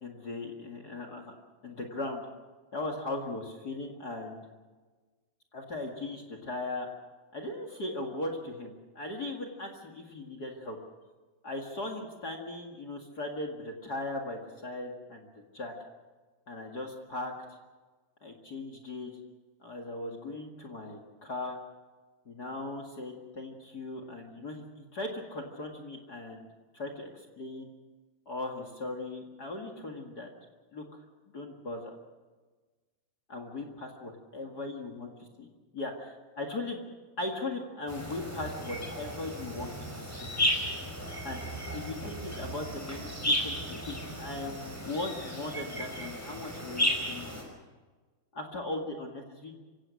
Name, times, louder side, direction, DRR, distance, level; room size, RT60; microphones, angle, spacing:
voice 1, 0.0-1.3 1.6-2.2 2.7-4.5 5.5-6.9 7.3-10.8 11.4-15.3 15.5-15.7 16.5-17.6 18.2-19.1 19.6-21.6 22.2-26.5 26.7-27.7 28.2-30.3 30.7-30.8 31.3-32.0 33.3-35.1 35.4-36.8 37.2-40.3 41.2-41.4 41.7-47.4 48.3-49.6, left 2 dB, 35° left, 4 dB, 1.7 m, -38 dB
sound 1, 37.9-47.4, equal, 5° left, 4.7 m, -34 dB
26.0 x 16.5 x 6.4 m, 1.3 s
omnidirectional pair, 4.4 m